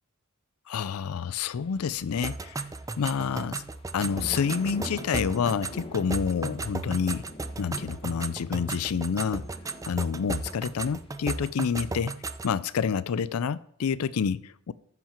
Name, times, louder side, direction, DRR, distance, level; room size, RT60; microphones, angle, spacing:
voice 1, 0.7-2.7 3.0-3.6 3.9-7.2 7.6-9.4 9.9-12.1 12.4-14.7, left 6 dB, 85° left, 17 dB, 0.4 m, -28 dB
sound 1, 1.5-11.7, left 1 dB, 25° left, 1.0 m, -46 dB
sound 2, 2.2-12.6, right 3 dB, 15° right, 0.4 m, -36 dB
14.5 x 5.8 x 5.1 m, 0.63 s
head